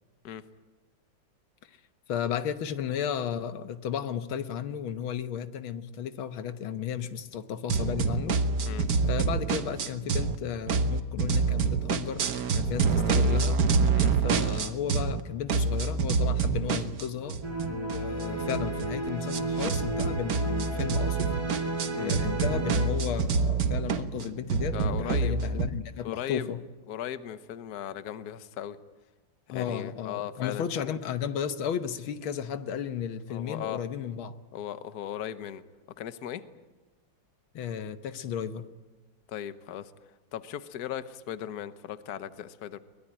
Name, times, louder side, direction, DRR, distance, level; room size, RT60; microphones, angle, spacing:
voice 1, 2.1-8.4 9.0-12.3 12.5-13.6 14.2-17.4 17.7-21.3 22.0-26.6 29.5-34.4 37.5-38.7, left 8 dB, 90° left, 10 dB, 1.9 m, -34 dB
sound 1, 7.7-10.4 10.7-15.2 15.5-25.7, right 4 dB, 55° right, 1.4 m, -27 dB
sound 2, 17.4-22.9, right 2 dB, 10° right, 4.0 m, -33 dB
voice 2, 24.6-25.4 26.0-26.5 26.9-28.8 29.5-30.9 33.3-33.8 34.5-35.6 36.0-36.4 39.3-39.9 40.3-42.8, left 10 dB, 60° left, 12 dB, 1.4 m, -37 dB
23.0 x 20.5 x 8.9 m, 1.2 s
omnidirectional pair, 2.2 m